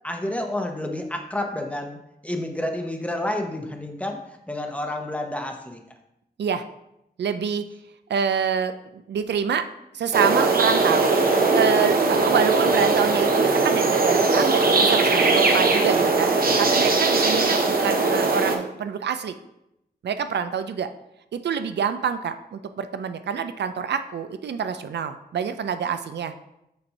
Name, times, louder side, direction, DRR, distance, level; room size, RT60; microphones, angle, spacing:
voice 1, 0.0-5.8 12.7-13.0 16.0-16.1, left 1 dB, 10° left, 3 dB, 0.7 m, -30 dB
voice 2, 7.2-7.6 8.1-9.6 9.9-11.1 11.5-19.3 20.0-20.9 21.3-26.3, right 7 dB, 85° right, 10 dB, 0.4 m, -26 dB
sound 1, 10.1-18.6, right 3 dB, 60° right, 0.8 m, -20 dB
6.9 x 2.6 x 5.5 m, 0.84 s
wide cardioid pair, 110°, 17 cm